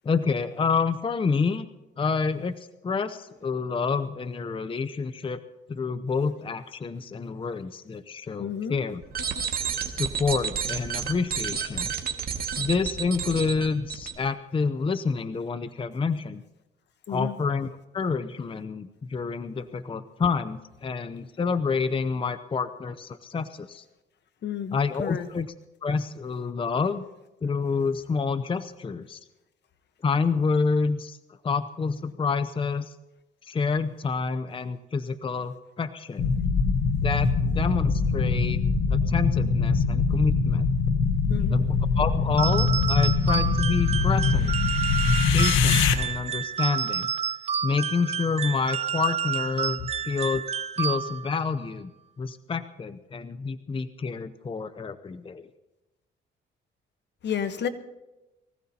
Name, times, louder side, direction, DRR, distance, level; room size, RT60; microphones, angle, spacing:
voice 1, 0.0-1.7 2.0-5.4 5.7-9.0 9.8-11.9 12.6-16.4 17.1-17.7 17.9-23.8 24.7-25.5 25.8-27.0 27.4-29.2 30.0-31.2 31.4-32.9 33.4-36.3 36.9-38.6 38.9-40.6 41.5-44.5 45.3-47.1 47.6-50.4 50.8-51.9 52.2-55.5, left 5 dB, 25° left, 11 dB, 0.6 m, -28 dB
voice 2, 8.4-8.8 17.1-17.3 24.4-25.3 41.3-41.6 57.2-57.7, left 8 dB, 60° left, 10 dB, 1.2 m, -31 dB
sound 1, 9.0-14.1, right 7 dB, 50° right, 1.8 m, -31 dB
sound 2, 36.2-45.9, left 4 dB, 90° left, 1.2 m, -23 dB
sound 3, 42.4-51.4, right 8 dB, 30° right, 0.4 m, -30 dB
23.5 x 16.0 x 2.9 m, 1.0 s
cardioid pair, 90°, 20 cm